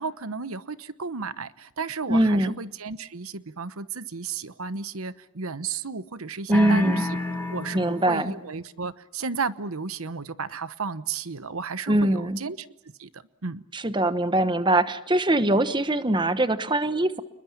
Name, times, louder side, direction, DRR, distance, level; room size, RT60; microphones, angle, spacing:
voice 1, 0.0-7.2 7.5-12.7 13.0-13.6, right 5 dB, 80° right, 15 dB, 1.0 m, -33 dB
voice 2, 2.1-2.5 6.5-7.0 7.7-8.3 11.9-12.4 13.7-17.2, right 1 dB, 20° right, 12 dB, 1.1 m, -22 dB
sound 1, 6.5-8.4, left 2 dB, 10° left, 4.9 m, -30 dB
29.5 x 21.5 x 7.2 m, 0.83 s
head